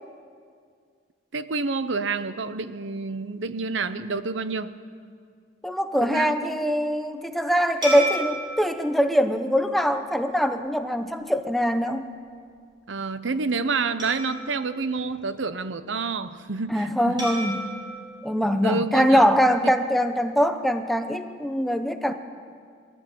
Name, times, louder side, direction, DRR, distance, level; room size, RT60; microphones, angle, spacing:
voice 1, 1.3-4.7 6.0-6.6 12.9-17.3 18.6-19.3 19.6-19.7 22.1-22.2, right 4 dB, 80° right, 13 dB, 0.8 m, -28 dB
voice 2, 5.6-12.0 16.7-17.6 18.2-22.1, equal, ahead, 7 dB, 0.8 m, -23 dB
sound 1, 7.8-10.5 11.1-11.3 14.0-15.8 17.2-19.5, right 1 dB, 25° right, 6.5 m, -35 dB
21.0 x 13.5 x 9.1 m, 2.1 s
head